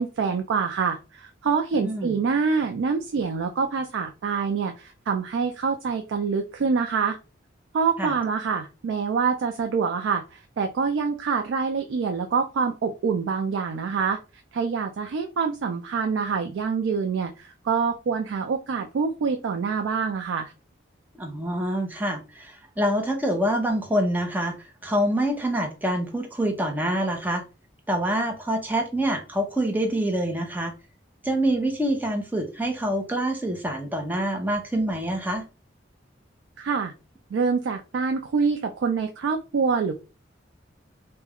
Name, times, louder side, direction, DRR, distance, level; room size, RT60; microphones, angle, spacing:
voice 1, 0.0-7.2 7.7-14.2 14.5-20.5 36.6-36.9 37.3-39.9, right 5 dB, 85° right, 4 dB, 0.3 m, -26 dB
voice 2, 1.8-2.1 8.0-8.2 21.2-24.5 24.8-27.4 27.9-30.7 31.2-35.4, right 1 dB, 10° right, 2 dB, 0.5 m, -26 dB
2.3 x 2.1 x 3.4 m, 0.31 s
head